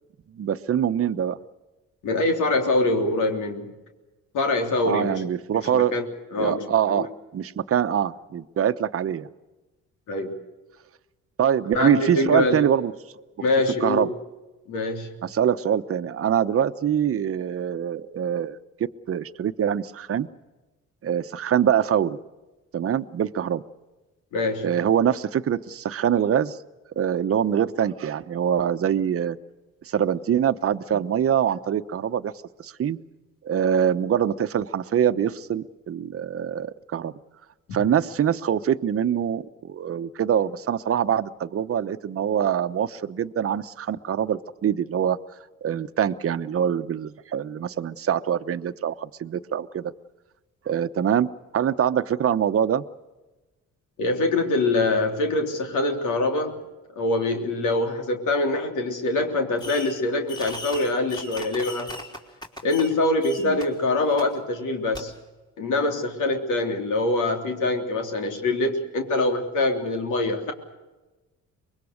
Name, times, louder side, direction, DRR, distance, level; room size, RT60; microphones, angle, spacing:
voice 1, 0.3-1.4 4.8-6.0 6.4-9.3 11.4-12.9 13.8-14.1 15.2-18.6 19.1-20.3 21.0-22.2 22.7-23.6 24.6-26.6 27.0-29.4 29.8-32.3 32.6-33.0 33.4-37.1 37.7-45.2 45.6-49.9 50.7-52.8 63.4-63.6, right 9 dB, 50° right, 10 dB, 1.0 m, -24 dB
voice 2, 2.0-3.7 4.3-5.2 5.7-6.0 6.3-6.6 7.0-7.1 10.1-10.3 11.7-12.6 13.4-14.1 14.7-15.1 24.3-24.7 37.7-37.8 54.0-56.6 56.9-61.9 62.6-65.1 65.6-70.5, left 2 dB, 80° left, 4 dB, 3.4 m, -24 dB
Fireworks, 59.6-60.0 60.3-62.9 63.2-63.6 64.2-64.3 64.9-65.0, left 2 dB, 15° left, 3.5 m, -37 dB
24.5 x 21.5 x 6.5 m, 1.1 s
cardioid pair, 90°, 30 cm